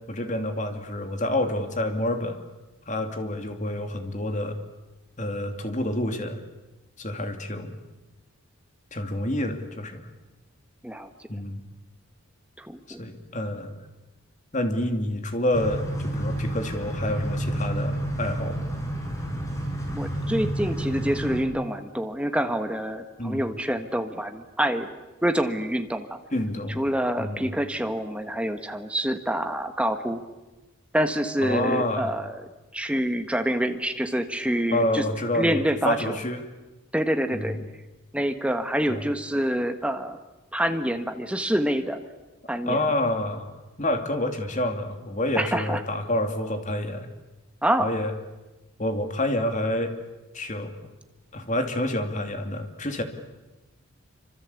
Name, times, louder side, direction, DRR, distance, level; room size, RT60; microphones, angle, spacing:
voice 1, 0.1-2.4 2.9-4.6 5.2-6.4 7.0-7.8 8.9-10.0 11.3-11.6 12.9-13.7 14.5-18.6 23.2-23.4 26.3-26.8 27.2-27.5 31.4-32.2 34.7-36.4 37.3-37.6 38.9-39.0 42.7-47.1 47.8-48.1 48.8-50.0 50.3-50.7 51.3-53.0, left 1 dB, 35° left, 6 dB, 2.7 m, -28 dB
voice 2, 12.6-13.0 19.9-24.9 25.2-26.2 26.8-30.2 30.9-32.4 32.7-35.1 35.3-36.1 36.9-37.6 38.1-40.2 40.5-42.0 42.5-42.8 45.3-45.8 47.6-47.9, right 1 dB, 5° right, 7 dB, 1.5 m, -26 dB
sound 1, 15.5-21.4, right 1 dB, 15° left, 4.7 m, -30 dB
27.5 x 25.5 x 8.5 m, 1.1 s
head